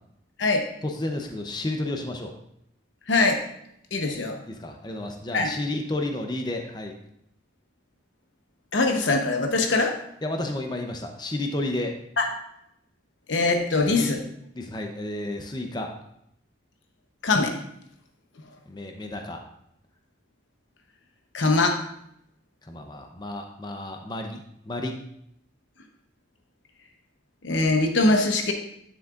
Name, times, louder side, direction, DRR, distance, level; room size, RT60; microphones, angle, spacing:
voice 1, 0.8-2.3 4.6-6.9 10.2-12.0 13.9-14.1 14.6-15.9 18.7-19.4 22.7-25.0, left 1 dB, 20° left, 3 dB, 0.7 m, -31 dB
voice 2, 3.1-3.4 3.9-4.4 5.3-5.5 8.7-10.0 12.2-12.3 13.3-14.2 17.2-17.6 21.3-21.8 27.4-28.5, left 3 dB, 80° left, 4 dB, 0.9 m, -22 dB
9.7 x 7.3 x 2.5 m, 0.75 s
head